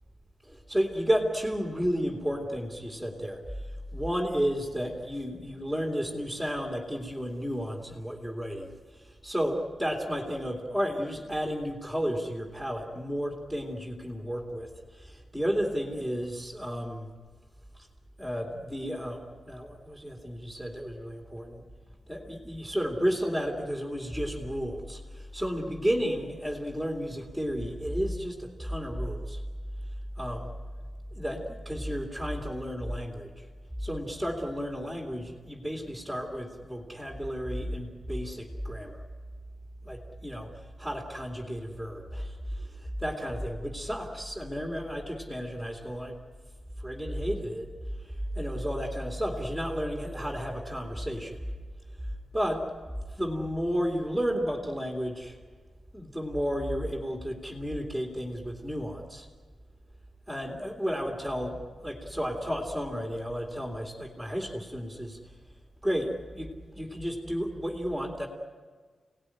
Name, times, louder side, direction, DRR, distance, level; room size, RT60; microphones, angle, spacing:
voice 1, 0.4-3.4 3.9-17.1 18.2-21.6 22.1-29.4 30.2-30.5 31.1-33.5 33.8-39.0 39.9-40.5 40.8-46.2 46.8-47.7 48.0-51.4 52.3-52.6 53.2-55.4 55.9-59.3 60.3-65.2 65.8-68.3, equal, 5° left, 0 dB, 2.5 m, -32 dB
29.5 x 18.0 x 10.0 m, 1.5 s
wide cardioid pair, 180°, 0 cm